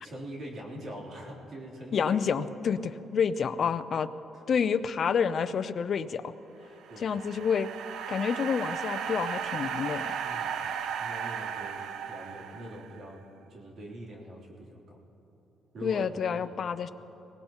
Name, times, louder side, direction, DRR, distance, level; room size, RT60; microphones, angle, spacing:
voice 1, 0.0-2.4 4.3-4.4 6.9-7.2 10.2-10.6 11.0-13.2 13.5-15.0 15.7-16.0 16.3-16.6, equal, 60° right, -2 dB, 3.3 m, -43 dB
voice 2, 1.9-4.1 4.5-6.3 7.0-7.7 8.1-10.2 15.8-16.9, left 6 dB, 55° left, 12 dB, 0.6 m, -28 dB
sound 1, 6.7-13.0, right 7 dB, 80° right, 0.6 m, -35 dB
23.5 x 18.5 x 3.0 m, 3.0 s
cardioid pair, 90°, 0 cm